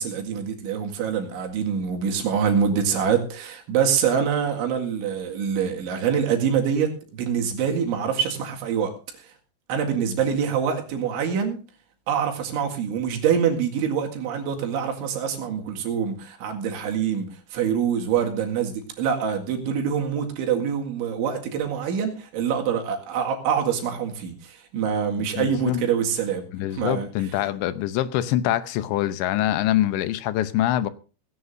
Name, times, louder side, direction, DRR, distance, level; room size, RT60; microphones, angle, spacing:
voice 1, 0.0-9.3 9.7-11.6 12.1-27.1, right 7 dB, 90° right, 4.4 m, -25 dB
voice 2, 25.2-25.8 26.5-30.9, left 13 dB, 80° left, 3.0 m, -24 dB
18.0 x 17.0 x 2.6 m
omnidirectional pair, 5.2 m